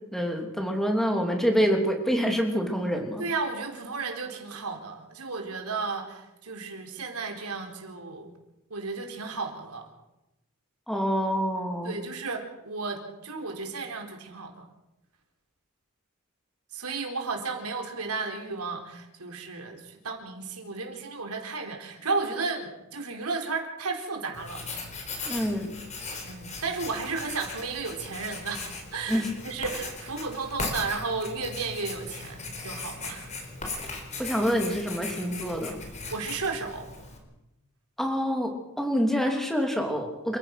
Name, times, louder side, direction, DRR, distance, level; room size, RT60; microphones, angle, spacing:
voice 1, 0.1-3.2 10.9-12.0 25.3-25.8 29.1-29.3 34.2-35.8 38.0-40.4, equal, ahead, 3 dB, 3.3 m, -26 dB
voice 2, 3.2-8.3 8.7-9.9 11.8-14.6 16.7-24.6 26.1-33.3 36.1-36.9, right 4 dB, 80° right, 3 dB, 4.2 m, -33 dB
Writing, 24.3-37.2, left 3 dB, 35° left, 4.4 m, -38 dB
28.5 x 15.5 x 6.1 m, 0.93 s
head